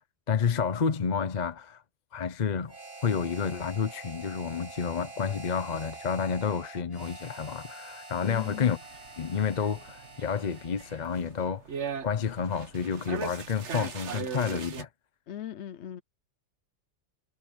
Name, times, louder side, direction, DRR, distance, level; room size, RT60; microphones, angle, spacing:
voice 1, 0.3-1.8 2.1-2.7 3.0-8.8 9.2-11.7 12.0-14.9, left 6 dB, 40° left, 0.8 m, -30 dB
Harmonica, 2.7-11.3, right 3 dB, 55° right, 3.3 m, -46 dB
voice 2, 8.2-8.8 15.3-16.0, left 10 dB, 70° left, 1.0 m, -39 dB
sound 1, 8.8-14.8, right 6 dB, 70° right, 1.4 m, -39 dB
omnidirectional pair, 1.2 m